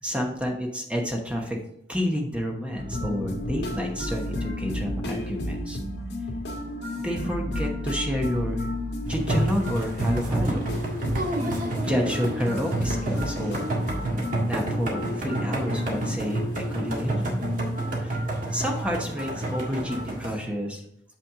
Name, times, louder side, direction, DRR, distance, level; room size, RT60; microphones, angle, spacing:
voice 1, 0.0-1.6 1.9-5.8 7.0-8.7 9.1-10.6 11.8-13.6 14.4-17.4 18.0-18.2 18.5-20.8, equal, 5° right, 1 dB, 1.0 m, -29 dB
sound 1, 2.8-20.1, left 1 dB, 70° left, 1.7 m, -33 dB
sound 2, 9.0-20.3, right 1 dB, 50° right, 1.7 m, -29 dB
7.1 x 5.7 x 3.7 m, 0.73 s
head